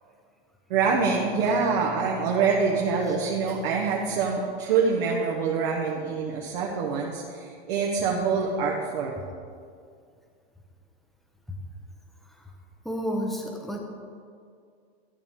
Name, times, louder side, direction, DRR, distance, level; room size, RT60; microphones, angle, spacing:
voice 1, 0.7-9.2, right 5 dB, 55° right, -1 dB, 1.2 m, -25 dB
voice 2, 12.8-13.8, equal, ahead, 1 dB, 0.9 m, -30 dB
12.0 x 6.9 x 3.6 m, 2.2 s
supercardioid pair, 145°, 30 cm